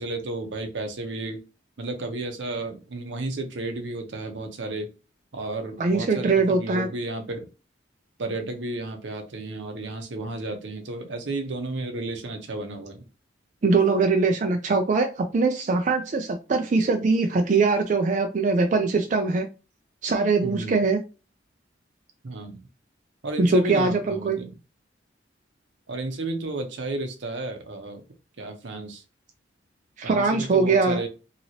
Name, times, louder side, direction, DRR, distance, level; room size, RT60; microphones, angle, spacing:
voice 1, 0.0-1.4 1.8-4.9 5.3-7.5 8.2-13.0 20.4-20.8 22.2-22.6 23.2-24.5 25.9-28.0 28.4-29.0 30.0-31.1, right 2 dB, 80° right, 5 dB, 0.7 m, -32 dB
voice 2, 5.8-6.9 13.6-19.5 20.0-21.0 23.4-24.4 30.0-31.0, right 3 dB, 45° right, 4 dB, 0.4 m, -22 dB
2.9 x 2.8 x 2.7 m, 0.31 s
head